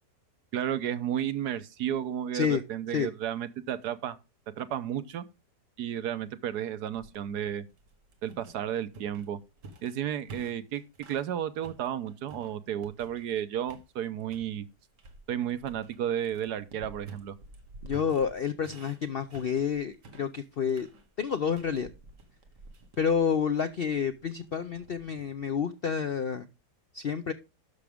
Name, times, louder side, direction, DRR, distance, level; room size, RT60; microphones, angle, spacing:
voice 1, 0.5-4.2 4.6-5.2 5.8-7.6 8.2-9.4 9.8-10.8 11.1-14.7 15.3-17.3, right 10 dB, 75° right, 1.3 m, -32 dB
sound 1, 6.9-11.3 11.6-13.4 13.7-14.5 15.0-25.5, right 2 dB, 90° right, 2.2 m, -51 dB
voice 2, 17.8-20.9 21.2-21.9 23.0-26.5 26.9-27.3, left 7 dB, 65° left, 0.5 m, -29 dB
12.0 x 6.2 x 3.5 m
omnidirectional pair, 1.8 m